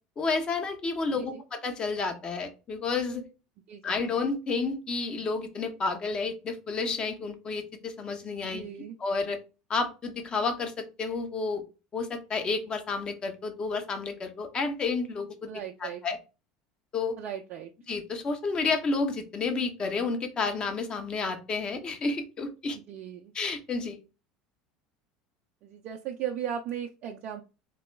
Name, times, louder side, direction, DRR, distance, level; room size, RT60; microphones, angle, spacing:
voice 1, 0.2-3.2 3.8-8.7 9.0-9.4 9.7-11.6 11.9-15.5 15.8-16.2 16.9-17.2 17.9-22.8 23.3-24.0, left 4 dB, 35° left, 6 dB, 1.0 m, -30 dB
voice 2, 1.1-1.4 3.7-4.0 8.5-9.0 15.5-16.0 17.2-17.7 22.9-23.3 25.6-27.4, right 9 dB, 55° right, 1 dB, 0.5 m, -37 dB
4.0 x 2.9 x 3.4 m, 0.31 s
hypercardioid pair, 75°, 3 cm